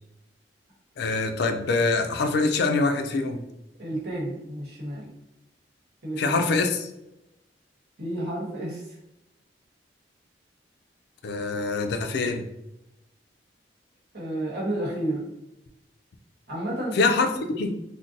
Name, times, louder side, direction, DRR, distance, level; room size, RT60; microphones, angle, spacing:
voice 1, 1.0-3.4 6.2-6.9 11.2-12.4 17.0-17.8, left 3 dB, 65° left, 6 dB, 0.4 m, -24 dB
voice 2, 3.8-5.1 6.0-6.4 8.0-9.0 14.1-15.3 16.5-17.1, right 1 dB, 65° right, -4 dB, 1.1 m, -31 dB
2.5 x 2.1 x 3.8 m, 0.88 s
head